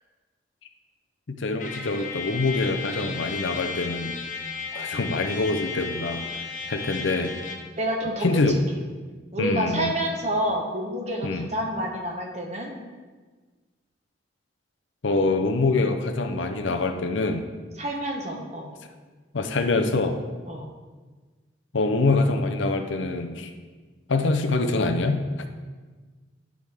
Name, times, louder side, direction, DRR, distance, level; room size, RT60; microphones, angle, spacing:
voice 1, 1.4-4.2 4.7-6.3 6.7-7.4 8.2-8.6 9.4-10.0 11.2-11.5 15.0-17.4 19.3-20.2 21.7-23.5 24.1-25.2, left 3 dB, 75° left, 6 dB, 0.7 m, -25 dB
Trumpet, 1.6-7.7, left 5 dB, 40° left, 0.9 m, -34 dB
voice 2, 7.8-8.4 9.3-12.7 17.8-18.7 20.5-20.7, equal, 35° right, 1 dB, 1.0 m, -28 dB
11.0 x 4.9 x 3.5 m, 1.4 s
head